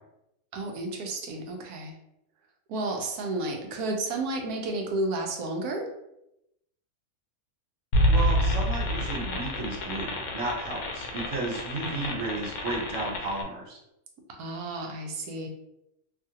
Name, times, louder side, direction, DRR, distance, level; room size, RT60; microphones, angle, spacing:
voice 1, 0.5-1.9 2.7-5.9 14.4-15.5, right 2 dB, 85° right, 2 dB, 1.2 m, -32 dB
sound 1, 7.9-13.4, equal, 75° left, 1.0 m, -28 dB
voice 2, 8.1-13.8, right 2 dB, 70° right, -2 dB, 1.1 m, -33 dB
2.8 x 2.4 x 2.7 m, 0.83 s
omnidirectional pair, 1.5 m